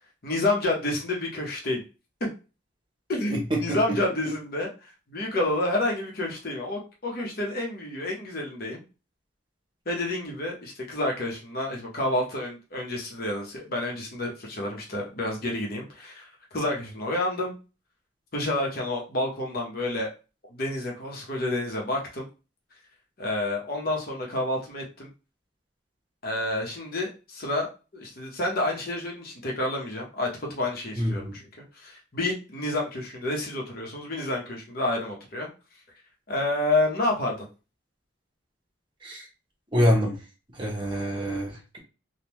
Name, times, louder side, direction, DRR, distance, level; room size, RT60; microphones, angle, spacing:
voice 1, 0.2-1.8 3.1-4.7 5.1-8.8 9.9-17.5 18.3-20.1 20.5-22.3 23.2-25.1 26.2-27.7 27.9-35.5 36.3-37.4, left 2 dB, 50° left, -1 dB, 0.9 m, -29 dB
voice 2, 3.3-3.8 31.0-31.3 39.0-39.2 39.7-40.1 40.6-41.8, equal, 25° right, -1 dB, 1.0 m, -25 dB
3.6 x 2.3 x 3.0 m, 0.32 s
head